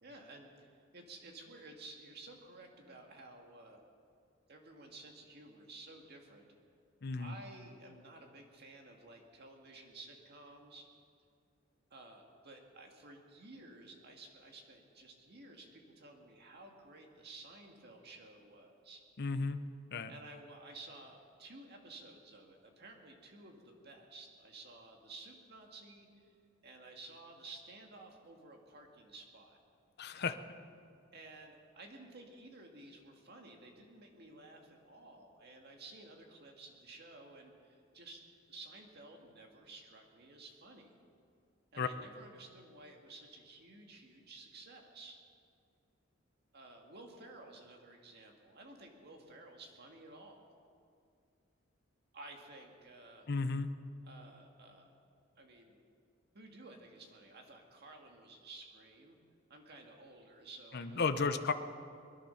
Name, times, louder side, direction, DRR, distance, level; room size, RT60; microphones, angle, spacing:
voice 1, 0.0-3.8 4.5-6.5 7.2-10.9 11.9-19.0 20.1-26.3 26.6-29.6 31.1-38.2 38.5-40.9 41.7-45.2 46.5-50.5 52.1-53.3 54.0-54.9 55.4-55.8 56.3-59.2 59.5-61.5, right 2 dB, 55° right, 2 dB, 2.0 m, -54 dB
voice 2, 7.0-7.3 19.2-19.6 19.9-20.1 30.0-30.4 41.8-41.9 53.3-53.7 60.7-61.5, left 4 dB, 55° left, 9 dB, 0.7 m, -33 dB
22.0 x 11.0 x 5.8 m, 2.3 s
head